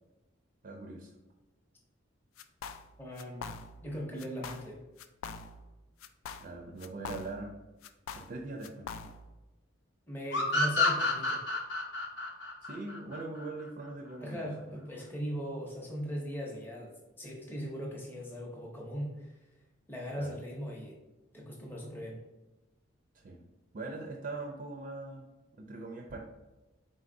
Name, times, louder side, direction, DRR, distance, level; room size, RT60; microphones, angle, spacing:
voice 1, 0.6-1.1 6.4-7.5 8.1-8.9 12.6-14.5 20.2-20.4 23.1-23.4 23.7-25.2 25.6-26.2, right 2 dB, 40° right, 1 dB, 0.4 m, -41 dB
sound 1, 2.4-2.9 3.2-3.9 4.2-4.7 5.0-5.7 6.0-7.5 7.8-9.3, left 5 dB, 90° left, 0.3 m, -44 dB
voice 2, 3.0-3.5 3.8-4.8 10.1-11.4 14.2-19.3 19.9-21.0 21.3-22.2, equal, 10° left, -2 dB, 0.6 m, -39 dB
sound 2, 10.3-13.7, left 2 dB, 60° left, 0.7 m, -29 dB
4.0 x 3.9 x 2.5 m, 1.1 s
head